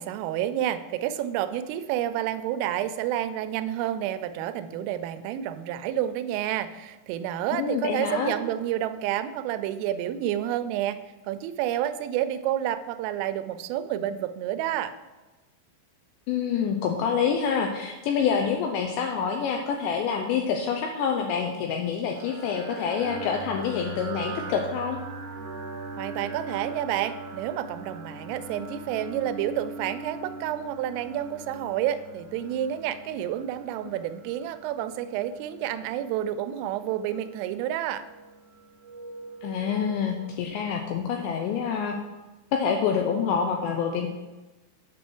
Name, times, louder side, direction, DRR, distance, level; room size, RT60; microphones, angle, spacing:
voice 1, 0.0-11.0 11.3-14.9 26.0-38.0, right 11 dB, 90° right, 11 dB, 3.2 m, -29 dB
voice 2, 7.5-8.4 16.3-25.0 39.4-42.0 42.5-44.1, left 6 dB, 85° left, 3 dB, 2.6 m, -27 dB
sound 1, 22.1-41.8, right 3 dB, 70° right, 1.5 m, -41 dB
8.8 x 6.3 x 4.4 m, 1.1 s
omnidirectional pair, 5.7 m